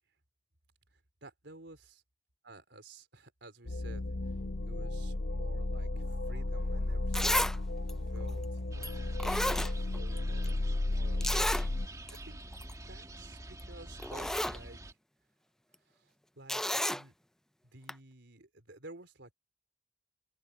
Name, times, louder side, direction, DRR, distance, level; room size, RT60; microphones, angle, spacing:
voice 1, 0.9-2.0 2.4-4.4 4.7-7.5 8.0-12.5 12.8-15.0 15.8-17.1 17.6-19.3, right 2 dB, 80° right, 3.9 m, -53 dB
sound 1, 3.6-11.9, left 2 dB, 85° left, 0.9 m, -34 dB
Zipper (clothing), 6.6-6.7 7.1-7.6 7.9-8.0 8.8-8.9 9.2-10.2 10.4-10.5 11.2-11.7 12.1-12.2 12.5-12.7 13.6-13.7 14.0-14.6 16.5-17.0 17.9-18.0, left 1 dB, 5° left, 0.4 m, -31 dB
sound 2, 8.7-14.9, right 1 dB, 20° right, 2.3 m, -46 dB
open air
head